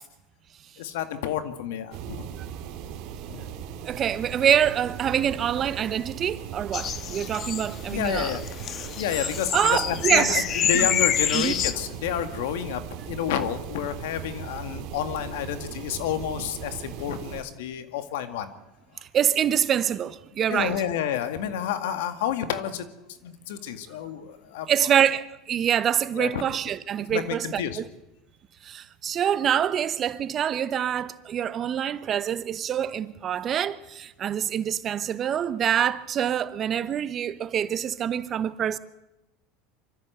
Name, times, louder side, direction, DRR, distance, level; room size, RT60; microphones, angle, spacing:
voice 1, 0.8-2.3 3.3-3.5 7.1-7.3 7.9-8.5 9.0-18.5 18.9-19.0 20.5-22.9 23.2-24.9 26.2-26.4 27.1-27.8, left 9 dB, 85° left, 2.0 m, -30 dB
sound 1, 1.9-17.4, right 9 dB, 60° right, 2.4 m, -38 dB
voice 2, 3.8-8.3 9.2-10.4 10.7-10.9 11.3-11.5 19.1-20.8 24.7-27.9 28.6-38.8, right 9 dB, 35° right, 1.0 m, -25 dB
sound 2, 6.7-11.7, left 9 dB, 40° left, 1.3 m, -27 dB
25.0 x 13.5 x 8.1 m
supercardioid pair, 115°, 0 cm